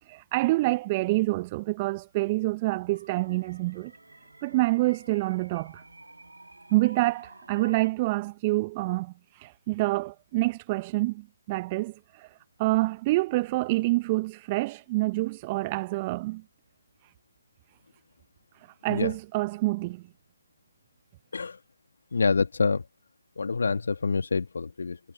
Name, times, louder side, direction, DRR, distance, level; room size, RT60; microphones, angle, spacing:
voice 1, 0.0-3.9 4.4-5.8 6.7-12.3 12.6-16.4 17.0-17.1 18.5-20.0, right 21 dB, 25° right, 0.8 m, -27 dB
sound 1, 2.9-7.9, right 2 dB, 85° right, 5.1 m, -51 dB
voice 2, 22.1-22.9 23.4-25.0, left 4 dB, 65° left, 1.6 m, -26 dB
figure-of-eight pair, 140°, 0 cm